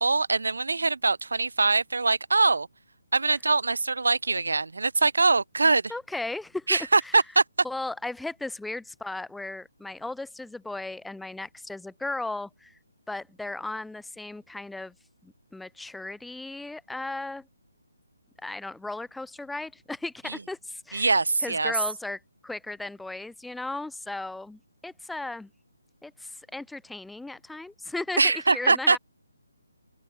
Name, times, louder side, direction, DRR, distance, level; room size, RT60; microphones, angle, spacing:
voice 1, 0.0-2.7 3.1-5.9 6.7-7.4 20.3-20.4 20.9-21.7 28.2-29.0, right 3 dB, 65° right, 2.1 m, -23 dB
voice 2, 5.9-7.2 7.6-12.8 13.1-14.9 15.2-17.4 18.4-21.1 21.4-25.5 26.0-29.0, left 2 dB, ahead, 1.5 m, -36 dB
open air
figure-of-eight pair, 145°, 0 cm